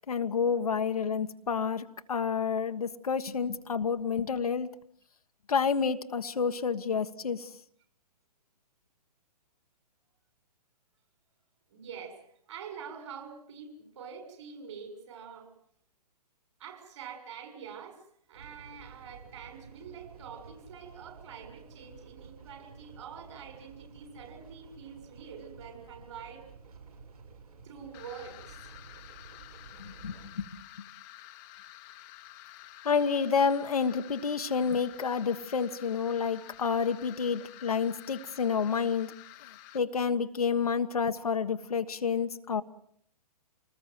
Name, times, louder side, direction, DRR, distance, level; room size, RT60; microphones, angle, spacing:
voice 1, 0.1-4.7 5.5-7.5 29.8-30.4 32.8-39.1 39.7-42.6, left 6 dB, 60° left, 8 dB, 1.4 m, -29 dB
voice 2, 11.7-12.2 12.5-15.5 16.6-18.0 18.3-26.5 27.6-28.7, right 7 dB, 45° right, 5 dB, 6.8 m, -46 dB
sound 1, 18.3-30.3, right 5 dB, 60° right, 6.7 m, -52 dB
sound 2, 27.9-39.8, left 16 dB, 25° left, 1.3 m, -50 dB
27.0 x 20.0 x 7.7 m, 0.65 s
figure-of-eight pair, 125°, 21 cm